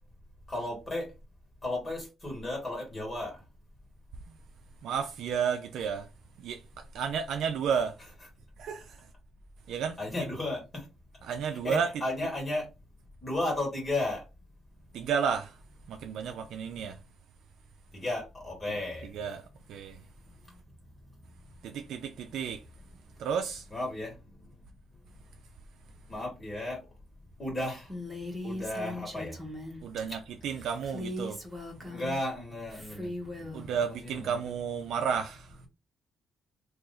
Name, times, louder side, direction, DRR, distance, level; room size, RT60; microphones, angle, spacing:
voice 1, 0.5-1.1 1.6-3.3 10.0-10.8 11.5-12.7 13.2-14.2 17.9-19.1 23.7-24.1 26.1-26.8 27.4-27.9 28.4-29.4 30.1-30.2 31.8-33.8 34.0-34.3, left 1 dB, 30° left, 1.6 m, -34 dB
voice 2, 4.8-6.1 6.4-6.6 6.9-7.9 8.6-9.0 9.7-10.0 11.2-11.9 14.9-15.6 15.9-17.0 19.1-19.4 19.7-20.0 21.6-22.6 23.2-23.7 29.8-31.4 33.5-35.6, right 7 dB, 80° right, 0.4 m, -32 dB
Female speech woman speaking, 27.9-29.8 30.8-32.2 32.7-33.7, left 1 dB, 15° right, 1.3 m, -39 dB
2.7 x 2.6 x 3.9 m
cardioid pair, 90°, 0 cm